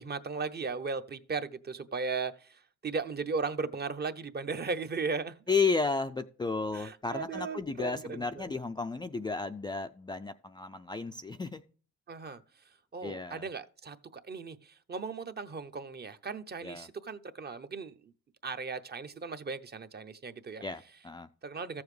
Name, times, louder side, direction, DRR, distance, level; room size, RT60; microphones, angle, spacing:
voice 1, 0.0-5.4 6.7-8.4 12.1-12.4 12.9-18.1 18.4-20.6 21.4-21.8, right 4 dB, 35° right, 0.7 m, -37 dB
voice 2, 5.5-11.6 13.0-13.4 16.6-16.9 20.6-21.3, left 4 dB, 15° left, 0.3 m, -33 dB
14.0 x 7.1 x 3.2 m
cardioid pair, 90°, 30 cm